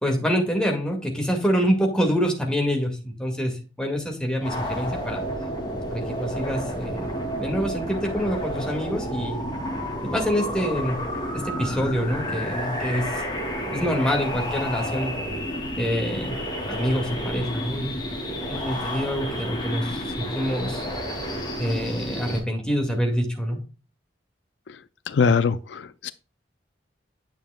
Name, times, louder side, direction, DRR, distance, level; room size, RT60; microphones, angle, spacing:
voice 1, 0.0-5.2 5.9-9.4 10.1-11.0 11.3-13.2 13.7-15.2 15.7-16.4 16.7-18.0 18.5-20.8 21.6-23.6, equal, 5° left, 2.0 m, -26 dB
sound 1, 4.4-22.4, equal, 25° left, 2.5 m, -30 dB
voice 2, 25.1-26.1, left 5 dB, 70° left, 0.4 m, -22 dB
9.3 x 7.1 x 2.3 m
head